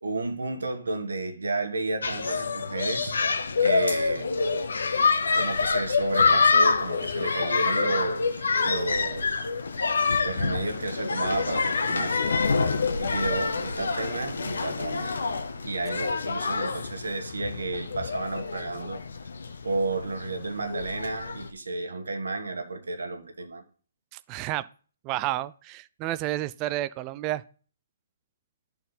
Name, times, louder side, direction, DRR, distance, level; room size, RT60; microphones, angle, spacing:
voice 1, 0.0-3.2 3.6-4.3 5.3-9.5 10.2-12.3 13.0-15.2 15.6-19.0 19.6-23.6, right 3 dB, 90° right, 1.4 m, -32 dB
sound 1, 2.0-21.5, left 4 dB, 80° left, 0.8 m, -26 dB
voice 2, 24.1-24.7 25.0-27.4, right 15 dB, 25° right, 0.4 m, -30 dB
11.0 x 4.3 x 4.1 m
hypercardioid pair, 150°, 0 cm